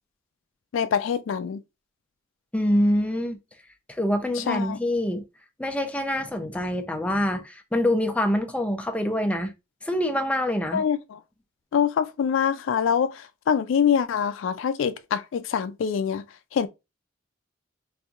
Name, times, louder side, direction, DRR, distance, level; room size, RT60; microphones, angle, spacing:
voice 1, 0.7-1.6 4.5-4.8 10.7-11.2 11.7-16.2 16.5-16.7, left 7 dB, 70° left, 0.3 m, -24 dB
voice 2, 2.5-3.4 3.9-5.2 5.6-9.5 9.8-10.8, left 1 dB, 5° left, 0.4 m, -25 dB
4.3 x 2.6 x 2.3 m
head